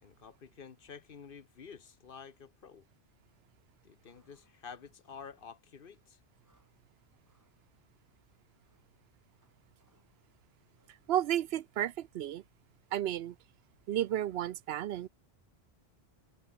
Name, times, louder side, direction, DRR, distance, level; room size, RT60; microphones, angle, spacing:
voice 1, 0.0-2.9 3.8-6.2, left 6 dB, 55° left, 1.2 m, -50 dB
sound 1, 4.0-11.1, equal, 15° right, 7.3 m, -76 dB
voice 2, 11.1-12.4 12.9-13.4 13.9-15.1, right 12 dB, 70° right, 0.8 m, -32 dB
omnidirectional pair, 1.1 m